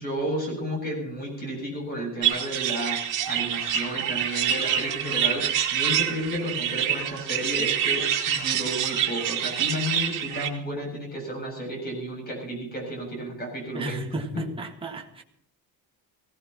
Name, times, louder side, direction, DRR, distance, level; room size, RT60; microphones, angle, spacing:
voice 1, 0.0-14.0 14.3-14.4, equal, 25° left, 7.8 m, -32 dB
sound 1, 2.2-10.5, right 9 dB, 50° right, 2.5 m, -26 dB
voice 2, 13.7-15.2, right 2 dB, 15° right, 1.7 m, -33 dB
22.5 x 17.5 x 3.1 m
cardioid pair, 175°, 40 cm